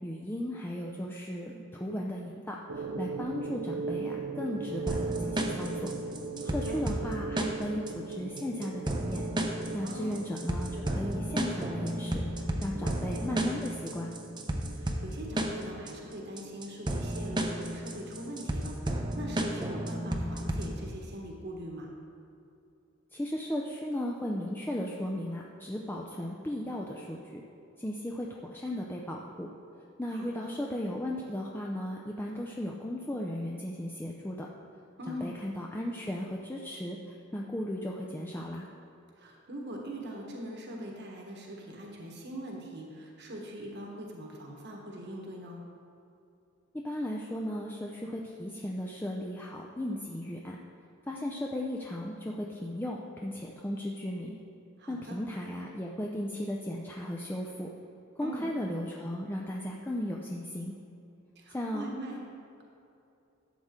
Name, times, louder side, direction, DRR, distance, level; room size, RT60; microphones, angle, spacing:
voice 1, 0.0-5.9 6.4-9.2 9.7-14.1 23.1-27.4 27.8-29.5 30.0-34.5 35.1-38.7 46.7-50.6 51.1-54.4 54.9-57.7 58.2-60.7 61.5-61.9, left 1 dB, 10° left, -1 dB, 0.5 m, -36 dB
sound 1, 2.7-20.0, right 4 dB, 80° right, 0.6 m, -40 dB
sound 2, 4.9-20.9, right 1 dB, 20° right, 0.8 m, -33 dB
voice 2, 6.4-6.8 9.8-10.2 14.7-21.9 30.1-30.5 35.0-35.3 39.1-45.6 54.8-55.2 58.2-58.5 61.3-62.2, equal, 55° right, 0 dB, 1.4 m, -42 dB
12.5 x 7.6 x 3.7 m, 2.7 s
head